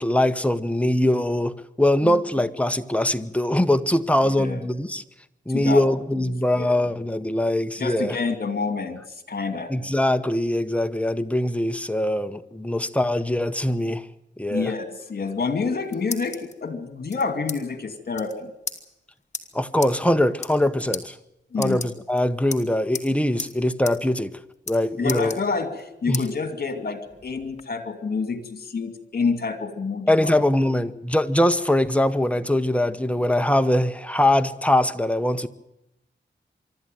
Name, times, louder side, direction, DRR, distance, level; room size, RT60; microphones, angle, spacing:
voice 1, 0.0-5.0 5.5-8.1 9.7-14.1 14.4-14.7 19.5-21.1 21.6-24.3 24.7-25.4 26.1-26.2 30.1-35.5, left 1 dB, 5° left, 9 dB, 0.9 m, -22 dB
voice 2, 4.2-4.6 5.5-5.9 6.2-6.8 7.8-9.0 9.3-9.7 14.5-18.5 21.5-21.8 25.0-30.3, left 4 dB, 55° left, 9 dB, 2.6 m, -28 dB
sound 1, 15.5-16.5 17.1-17.6 17.9-18.0 18.1-18.3 18.7-18.8 19.3-19.4 19.8-19.9 20.3-20.6 20.9-21.0 21.5-22.2 22.5-23.1 23.4-23.5 23.8-24.0 24.2-24.8 25.1-25.8 26.1-26.3 26.8-27.6, left 4 dB, 35° left, 2.3 m, -34 dB
25.0 x 12.5 x 9.2 m, 0.89 s
wide cardioid pair, 125°, 19 cm